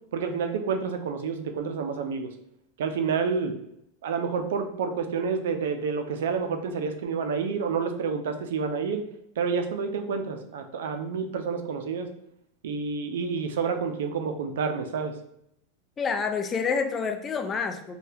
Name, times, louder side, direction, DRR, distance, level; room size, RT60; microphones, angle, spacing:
voice 1, 0.1-2.3 2.8-3.5 4.0-9.0 9.4-12.1 12.6-15.1, right 5 dB, 85° right, 7 dB, 0.4 m, -29 dB
voice 2, 16.0-18.0, left 5 dB, 20° left, 7 dB, 0.4 m, -28 dB
2.8 x 2.2 x 3.3 m, 0.77 s
supercardioid pair, 140°, 0 cm